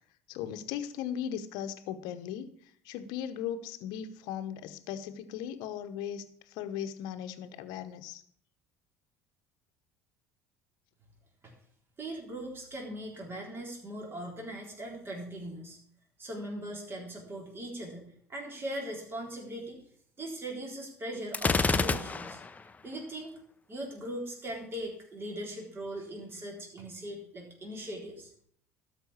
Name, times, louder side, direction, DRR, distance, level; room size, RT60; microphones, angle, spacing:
voice 1, 0.3-2.5 2.8-8.2, left 9 dB, 65° left, 11 dB, 1.0 m, -38 dB
voice 2, 12.0-15.8 16.2-19.8 20.2-22.4 22.8-23.3 23.7-28.3, right 1 dB, 30° right, 0 dB, 3.8 m, -40 dB
Gunshot gunfire, 21.3-22.6, left 4 dB, 20° left, 0.8 m, -28 dB
12.5 x 5.3 x 8.5 m, 0.62 s
hypercardioid pair, 65°, 8 cm